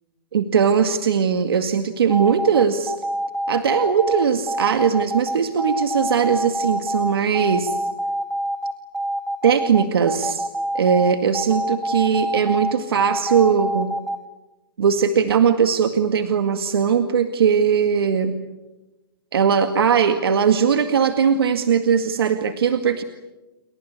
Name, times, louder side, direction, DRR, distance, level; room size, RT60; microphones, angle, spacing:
voice 1, 0.3-2.9 3.5-7.8 9.4-10.5 10.7-13.9 14.8-18.3 19.3-23.0, right 7 dB, 80° right, 7 dB, 2.1 m, -19 dB
sound 1, 2.1-14.2, right 1 dB, 5° right, 0.8 m, -25 dB
29.5 x 24.0 x 8.4 m, 1.1 s
hypercardioid pair, 170°, 12 cm